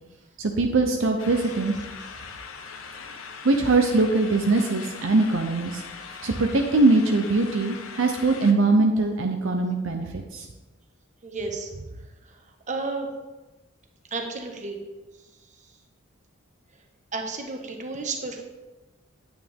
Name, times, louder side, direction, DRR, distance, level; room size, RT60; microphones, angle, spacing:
voice 1, 0.4-1.7 3.4-5.8 6.2-10.5, right 3 dB, 65° right, 3 dB, 0.7 m, -22 dB
sound 1, 1.2-8.5, left 5 dB, 75° left, 0.8 m, -41 dB
voice 2, 11.2-11.7 12.7-13.1 14.1-14.8 17.1-18.4, right 3 dB, 35° right, 3 dB, 1.2 m, -31 dB
9.3 x 8.9 x 3.6 m, 1.1 s
head